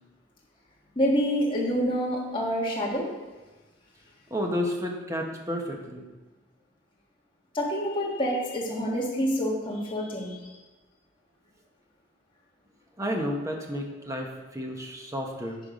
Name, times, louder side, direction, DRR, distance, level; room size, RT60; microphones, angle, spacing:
voice 1, 1.0-3.1 7.5-10.5, equal, 25° left, -4 dB, 1.8 m, -27 dB
voice 2, 4.3-6.1 13.0-15.6, equal, 15° right, 1 dB, 1.1 m, -31 dB
10.5 x 4.7 x 5.0 m, 1.2 s
head